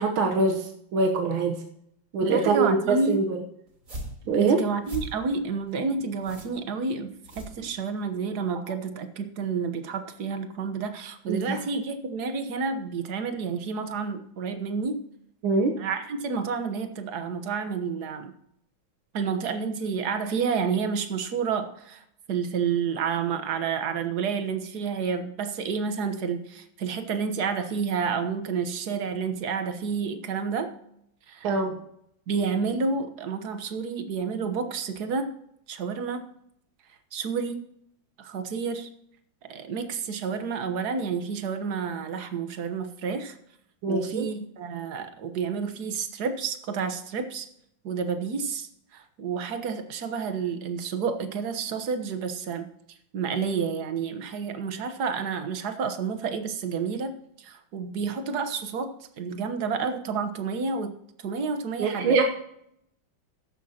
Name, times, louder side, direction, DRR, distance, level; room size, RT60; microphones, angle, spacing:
voice 1, 0.0-1.6 2.1-3.4 4.3-4.6 11.3-11.6 15.4-15.8 31.4-31.7 43.8-44.3 61.8-62.2, right 4 dB, 85° right, 3 dB, 1.9 m, -24 dB
voice 2, 2.3-3.2 4.4-15.0 15.8-18.3 19.1-30.7 31.3-31.6 32.3-35.3 35.7-36.2 37.1-37.6 38.2-38.9 39.5-43.4 43.9-47.5 47.8-52.7 53.1-57.1 57.4-60.9 61.2-62.2, right 5 dB, 55° right, 8 dB, 1.6 m, -30 dB
sound 1, 3.7-8.2, right 1 dB, 40° right, 4.0 m, -41 dB
14.0 x 11.5 x 2.9 m, 0.75 s
omnidirectional pair, 2.2 m